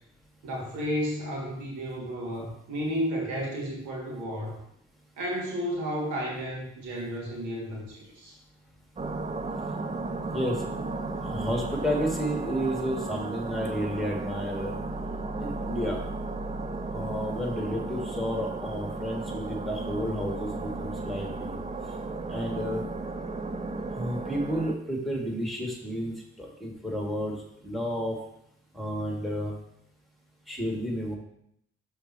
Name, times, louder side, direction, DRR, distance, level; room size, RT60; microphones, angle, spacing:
voice 1, 0.4-4.6 5.2-8.4, equal, 65° right, -3 dB, 2.5 m, -32 dB
sound 1, 9.0-24.8, right 3 dB, 20° right, 0.7 m, -34 dB
voice 2, 10.3-10.6 11.2-14.7 15.4-16.0 16.9-21.5 22.3-22.8 23.9-27.4 27.6-28.2 28.7-29.5 30.5-31.1, equal, ahead, -1 dB, 2.5 m, -31 dB
12.0 x 4.3 x 3.1 m, 0.74 s
figure-of-eight pair, 45°, 31 cm